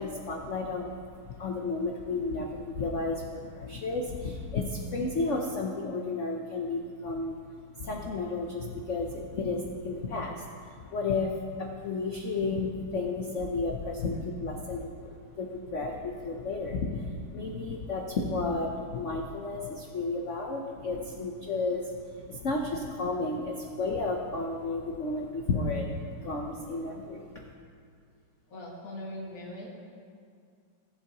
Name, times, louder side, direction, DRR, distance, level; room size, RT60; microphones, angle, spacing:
voice 1, 0.0-7.4 7.7-15.1 15.4-27.4, left 3 dB, 80° left, 0 dB, 0.6 m, -32 dB
voice 2, 28.5-29.7, left 1 dB, 40° left, -8 dB, 2.5 m, -41 dB
18.0 x 8.0 x 3.0 m, 2.3 s
omnidirectional pair, 2.4 m